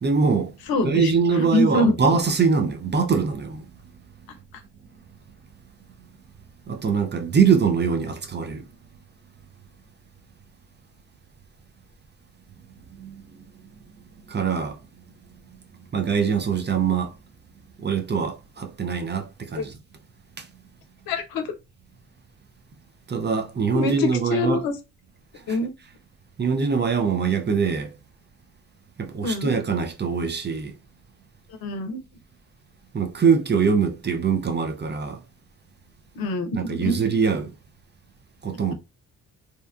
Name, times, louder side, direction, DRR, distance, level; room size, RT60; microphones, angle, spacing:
voice 1, 0.0-0.5 0.8-3.7 6.7-8.6 13.0-13.2 14.3-14.8 15.9-17.2 17.8-19.8 20.4-20.5 23.1-24.6 25.5-25.6 26.4-27.9 29.0-30.7 32.9-35.2 36.5-37.5 38.4-38.7, right 5 dB, 30° right, 0.5 m, -23 dB
voice 2, 0.7-1.1 1.4-1.9 19.6-19.7 21.1-21.5 23.7-24.7 25.5-25.7 29.2-29.5 31.6-32.0 36.2-37.0, left 2 dB, 70° left, 0.6 m, -24 dB
2.7 x 2.2 x 2.3 m
hypercardioid pair, 45°, 37 cm